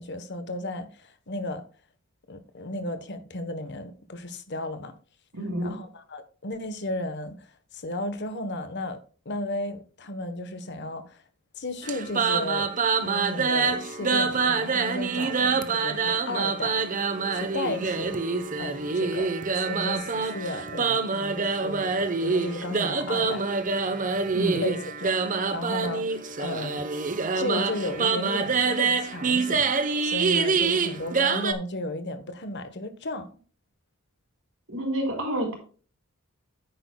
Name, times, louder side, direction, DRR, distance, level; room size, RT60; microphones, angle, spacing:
voice 1, 0.0-1.6 2.3-4.9 5.6-7.5 7.7-11.2 11.6-12.7 13.0-18.2 18.6-23.5 24.5-26.8 27.3-33.3, left 1 dB, 55° left, 1.2 m, -34 dB
voice 2, 5.3-5.8 24.3-24.7 34.7-35.5, equal, 70° right, 4.5 m, -29 dB
sound 1, 11.8-31.5, right 4 dB, 40° right, 1.0 m, -26 dB
9.9 x 9.6 x 2.3 m
head